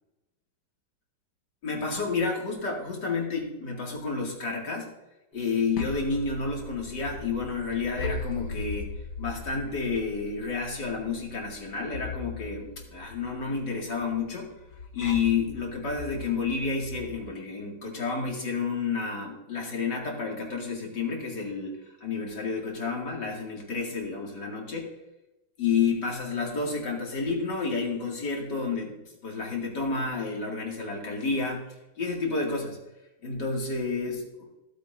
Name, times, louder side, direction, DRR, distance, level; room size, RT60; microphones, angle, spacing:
voice 1, 1.6-4.9 5.3-8.9 9.2-14.5 14.9-24.9 25.6-32.8 33.2-34.5, left 4 dB, 65° left, -1 dB, 2.9 m, -30 dB
sound 1, 5.4-17.2, left 3 dB, 85° left, 2.3 m, -39 dB
16.0 x 9.0 x 2.6 m, 0.95 s
omnidirectional pair, 2.1 m